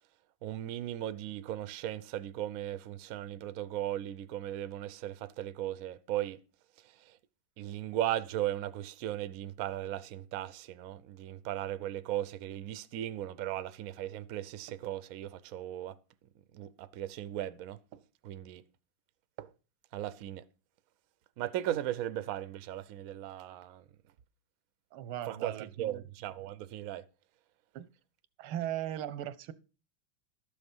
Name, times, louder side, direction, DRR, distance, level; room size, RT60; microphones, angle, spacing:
voice 1, 0.4-6.4 7.1-7.2 7.6-16.0 16.5-17.8 18.2-18.6 19.4-19.5 19.9-20.4 21.4-23.8 25.3-25.5 25.8-27.0, right 13 dB, 75° right, 0.8 m, -37 dB
voice 2, 24.9-26.0 27.7-27.9 28.4-29.5, right 12 dB, 90° right, 1.6 m, -38 dB
12.0 x 6.9 x 5.4 m
omnidirectional pair, 2.3 m